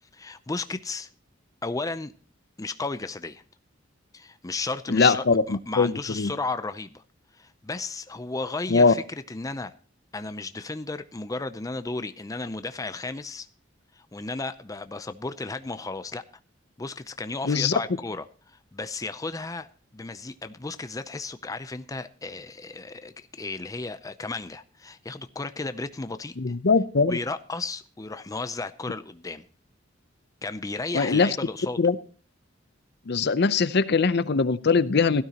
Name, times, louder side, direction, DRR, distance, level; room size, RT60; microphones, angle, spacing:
voice 1, 0.1-1.1 1.6-2.1 2.6-3.4 4.1-7.0 7.3-9.7 10.1-13.5 13.9-16.2 16.8-19.7 19.9-26.6 27.1-29.5 30.4-31.8, left 3 dB, 20° left, 0.5 m, -34 dB
voice 2, 4.9-6.3 8.7-8.9 17.5-17.7 26.4-27.2 30.9-31.3 31.8-32.0 33.1-35.2, left 4 dB, 60° left, 0.6 m, -21 dB
17.0 x 12.5 x 2.9 m
head